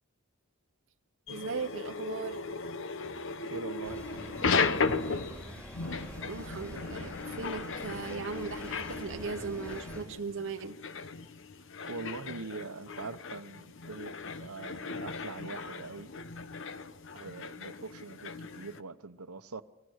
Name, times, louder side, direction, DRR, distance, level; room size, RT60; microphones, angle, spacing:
sound 1, 1.3-18.8, left 4 dB, 60° left, 1.0 m, -36 dB
voice 1, 1.3-2.4 6.3-10.8, right 4 dB, 60° right, 0.7 m, -38 dB
voice 2, 3.4-5.2 11.8-16.1 17.1-19.6, right 3 dB, 90° right, 1.0 m, -43 dB
sound 2, 3.8-10.1, equal, 5° left, 5.2 m, -46 dB
28.5 x 21.0 x 6.5 m
head